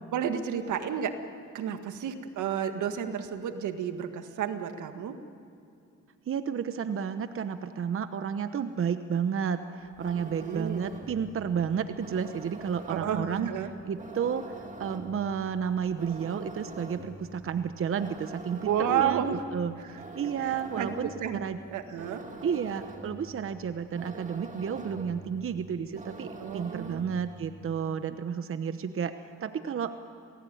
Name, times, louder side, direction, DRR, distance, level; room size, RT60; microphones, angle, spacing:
voice 1, 0.1-1.2 1.5-5.2 10.2-10.8 12.9-13.7 18.7-19.4 19.8-19.9 20.4-21.4 21.7-22.2 26.4-27.0, right 8 dB, 80° right, 8 dB, 1.7 m, -31 dB
voice 2, 6.3-13.5 13.8-19.8 20.1-21.6 22.4-29.9, right 7 dB, 45° right, 10 dB, 1.0 m, -32 dB
sound 1, 9.9-27.3, right 2 dB, 25° right, 2.7 m, -45 dB
27.5 x 18.5 x 9.4 m, 2.5 s
cardioid pair, 90°, 30 cm